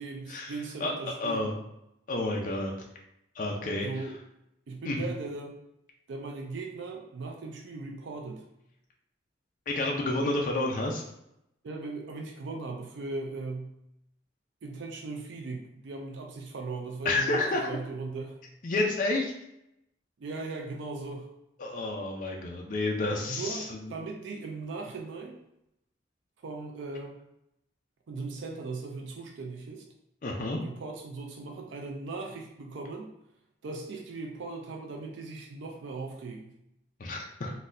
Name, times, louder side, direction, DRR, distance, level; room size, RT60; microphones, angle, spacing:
voice 1, 0.0-1.4 3.8-4.1 4.7-5.5 6.1-8.4 11.6-13.8 14.6-18.4 20.2-21.3 23.3-25.4 26.4-27.2 28.1-29.8 30.6-33.1 33.6-36.5, right 3 dB, 70° right, 1 dB, 0.4 m, -38 dB
voice 2, 0.8-1.6 2.1-2.9 3.4-4.0 4.9-5.1 9.7-11.0 17.0-17.7 18.6-19.3 21.6-23.8 30.2-30.6 37.0-37.5, left 2 dB, 45° left, 0 dB, 0.4 m, -30 dB
3.9 x 2.2 x 2.5 m, 0.82 s
head